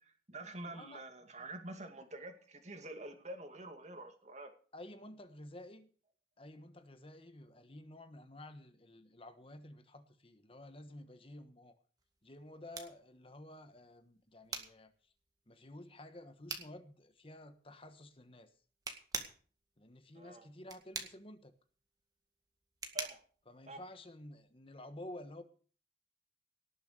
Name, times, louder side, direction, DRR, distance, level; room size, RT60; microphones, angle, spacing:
voice 1, 0.0-4.5 20.1-20.5 22.9-23.2 23.7-23.8, right 2 dB, 40° right, 6 dB, 2.4 m, -47 dB
voice 2, 0.7-1.0 4.7-5.9 6.4-11.8 12.2-14.9 15.5-18.5 19.8-21.5 23.5-25.4, left 1 dB, 30° left, 9 dB, 1.3 m, -52 dB
sound 1, 12.0-24.5, right 4 dB, 20° right, 2.0 m, -47 dB
18.5 x 7.2 x 6.8 m, 0.42 s
head